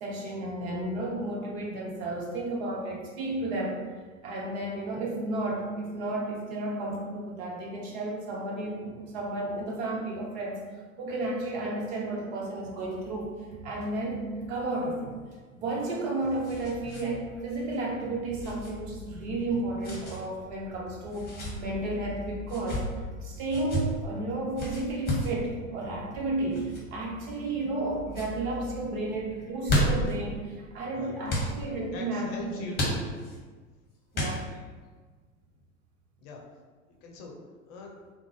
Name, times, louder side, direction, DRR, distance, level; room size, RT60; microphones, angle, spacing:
voice 1, 0.0-3.8 4.2-10.6 11.0-13.3 13.6-15.2 15.6-21.3 21.6-22.8 23.2-32.7 34.1-34.4, right 2 dB, 50° right, -1 dB, 0.8 m, -32 dB
sound 1, 12.7-15.4 15.6-15.9 16.2-29.5, left 1 dB, 20° right, 0.6 m, -47 dB
sound 2, 15.7-17.1 17.3-17.5 18.4-18.7 19.8-20.2 21.1-21.5 22.4-22.8 23.5-23.8 24.6-25.3 26.5-26.8 27.4-27.8 28.1-28.3 29.4-30.1 31.3-31.5 32.7-33.4 34.1-34.7, equal, 25° left, 1.0 m, -31 dB
voice 2, 30.9-31.5 31.9-33.2 36.2-36.4 37.0-37.4 37.7-38.0, left 3 dB, 45° left, -1 dB, 0.7 m, -42 dB
3.6 x 2.0 x 3.1 m, 1.4 s
figure-of-eight pair, 85°, 42 cm